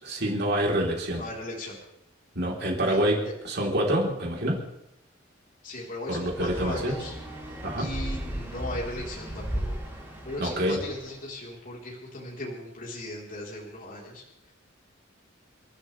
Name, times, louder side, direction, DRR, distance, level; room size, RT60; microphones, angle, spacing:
voice 1, 0.0-1.2 2.4-4.6 6.1-6.9 7.6-7.9 10.4-10.8, right 1 dB, 55° right, -2 dB, 3.8 m, -26 dB
voice 2, 1.1-1.8 2.9-3.3 5.6-7.2 7.8-9.8 10.2-14.2, left 1 dB, 45° left, -4 dB, 4.0 m, -37 dB
sound 1, 6.2-11.1, equal, 10° right, 4.4 m, -36 dB
28.5 x 13.0 x 3.4 m, 0.81 s
head